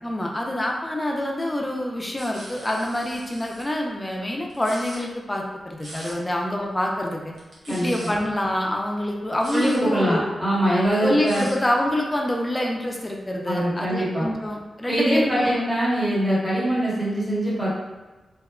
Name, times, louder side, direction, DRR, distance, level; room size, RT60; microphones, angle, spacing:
voice 1, 0.0-7.3 7.7-10.2 11.0-15.7, left 1 dB, 15° left, 0 dB, 0.3 m, -26 dB
sound 1, 2.2-3.6 4.5-5.0 5.8-6.1 7.3-8.1 9.3-9.8 10.8-11.5, right 1 dB, 85° right, 0.7 m, -41 dB
voice 2, 7.7-8.1 9.5-11.4 13.5-14.3 14.9-17.7, right 1 dB, 10° right, -9 dB, 1.1 m, -23 dB
2.7 x 2.1 x 2.3 m, 1.2 s
wide cardioid pair, 95°, 0 cm